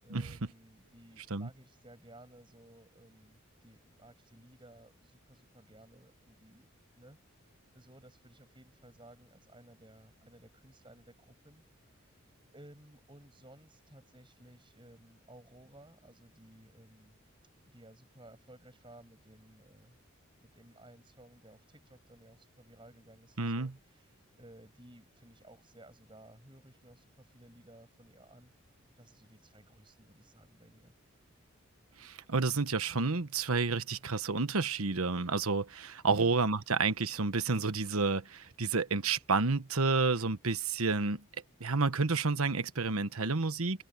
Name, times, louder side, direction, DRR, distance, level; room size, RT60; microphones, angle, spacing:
voice 1, 0.0-7.5 7.7-12.1 12.5-17.2 17.6-20.0 20.4-28.5 29.0-30.9 36.1-36.4, right 1 dB, 20° right, 7.8 m, -57 dB
voice 2, 23.4-23.7 32.0-41.2 41.6-43.8, right 4 dB, 85° right, 1.2 m, -30 dB
head